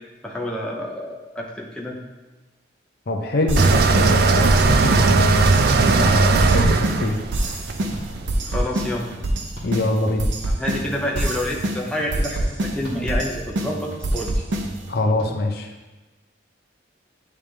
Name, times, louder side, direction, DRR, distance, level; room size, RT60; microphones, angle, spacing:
voice 1, 0.2-2.0 8.5-9.1 10.5-14.4, left 1 dB, 5° left, -2 dB, 0.6 m, -28 dB
voice 2, 3.1-7.2 9.6-10.3 14.9-15.7, left 2 dB, 55° left, 2 dB, 0.6 m, -24 dB
sound 1, 3.5-15.0, right 1 dB, 85° right, 0.7 m, -26 dB
sound 2, 3.6-8.5, right 4 dB, 55° right, 0.3 m, -18 dB
sound 3, 4.9-5.1 6.4-6.6 7.9-8.1 9.5-9.7 11.1-11.3 12.8-13.0 14.1-14.2 15.2-15.3, equal, 30° left, 1.7 m, -34 dB
8.7 x 3.4 x 3.3 m, 1.2 s
head